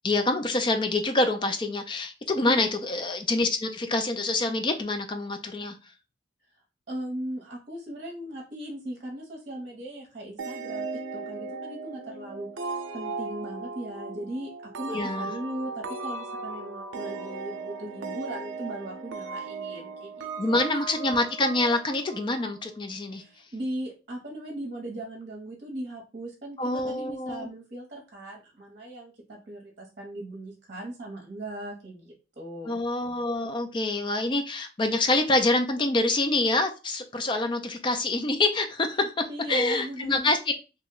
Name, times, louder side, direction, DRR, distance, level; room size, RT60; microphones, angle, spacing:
voice 1, 0.0-5.8 14.9-15.3 20.4-23.2 26.6-27.5 32.7-40.4, left 2 dB, 25° left, 0.4 m, -26 dB
voice 2, 6.9-14.5 14.8-20.6 23.1-32.8 39.3-40.3, right 1 dB, 40° right, 0.9 m, -38 dB
sound 1, 10.4-22.8, right 4 dB, 85° right, 0.5 m, -37 dB
3.0 x 2.2 x 3.7 m
head